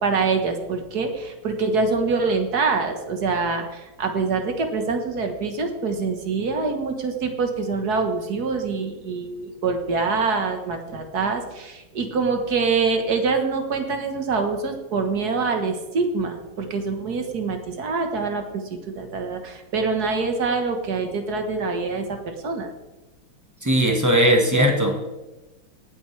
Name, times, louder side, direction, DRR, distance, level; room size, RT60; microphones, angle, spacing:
voice 1, 0.0-18.6 18.9-22.7, right 4 dB, 50° right, 5 dB, 1.7 m, -25 dB
voice 2, 23.6-25.0, equal, 10° right, 2 dB, 1.3 m, -18 dB
18.5 x 8.6 x 3.3 m, 1.1 s
omnidirectional pair, 2.4 m